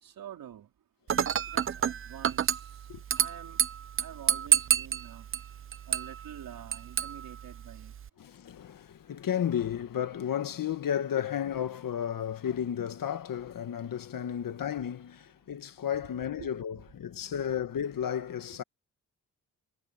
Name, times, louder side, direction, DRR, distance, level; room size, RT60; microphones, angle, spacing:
voice 1, 0.0-0.7 1.5-2.9 3.2-3.6 4.0-5.3 5.9-7.9 16.0-16.5 17.3-17.4, right 10 dB, 90° right, 4.1 m, -47 dB
Dishes pots and pans / Glass, 1.1-8.1, right 8 dB, 40° right, 0.5 m, -30 dB
voice 2, 8.2-18.6, left 9 dB, 75° left, 1.8 m, -33 dB
cardioid pair, 90°, 34 cm